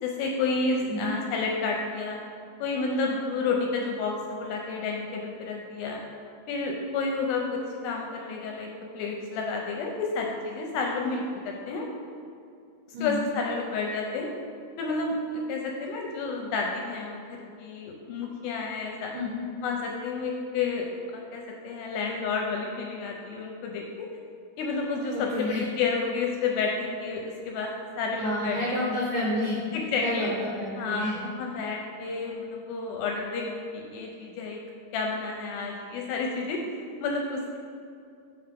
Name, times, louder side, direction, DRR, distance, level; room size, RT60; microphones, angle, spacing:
voice 1, 0.0-2.2 2.6-6.0 6.5-11.9 13.0-14.3 14.8-19.1 19.6-20.9 21.1-24.1 24.6-28.8 29.7-30.3 30.8-34.6 34.9-36.6 37.0-37.6, left 4 dB, 80° left, 1 dB, 2.5 m, -30 dB
voice 2, 12.9-13.3 19.1-19.5 25.1-25.7 28.2-29.6 30.0-31.2, left 1 dB, 75° right, -5 dB, 1.9 m, -30 dB
7.1 x 5.6 x 5.1 m, 2.4 s
omnidirectional pair, 5.2 m